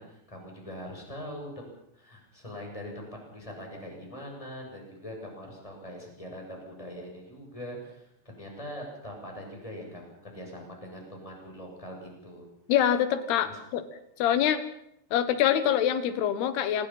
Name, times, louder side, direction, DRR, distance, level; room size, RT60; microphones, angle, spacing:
voice 1, 0.0-3.1 3.3-12.5 13.4-13.6, equal, 10° left, 0 dB, 6.8 m, -42 dB
voice 2, 12.7-13.9 14.2-14.6 15.1-16.9, left 10 dB, 85° left, 12 dB, 3.5 m, -25 dB
27.0 x 19.5 x 5.7 m, 0.78 s
omnidirectional pair, 4.5 m